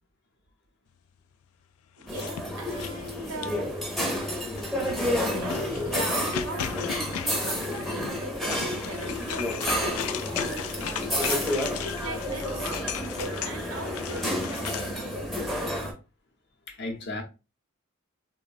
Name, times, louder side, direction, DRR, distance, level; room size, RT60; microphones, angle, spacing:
sound 1, 2.0-3.7 4.5-14.9, left 9 dB, 75° left, 0.3 m, -37 dB
voice 1, 2.0-3.7 5.4-15.7, right 1 dB, 75° right, 0.7 m, -40 dB
sound 2, 2.1-15.9, equal, ahead, 0.6 m, -30 dB
voice 2, 16.7-17.2, left 2 dB, 50° left, 0.7 m, -36 dB
3.2 x 2.1 x 2.3 m
head